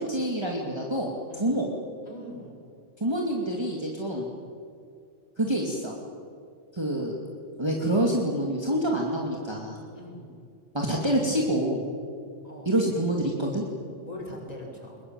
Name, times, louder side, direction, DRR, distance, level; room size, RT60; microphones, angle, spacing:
voice 1, 0.1-1.7 3.0-4.3 5.4-5.9 6.7-7.2 7.6-9.8 10.7-11.8 12.7-13.6, right 1 dB, 20° right, -1 dB, 2.6 m, -27 dB
voice 2, 2.0-2.6 4.0-4.3 9.9-10.3 12.4-12.7 14.0-15.0, left 1 dB, 30° left, -1 dB, 6.3 m, -42 dB
22.5 x 22.0 x 9.0 m, 2.3 s
omnidirectional pair, 1.3 m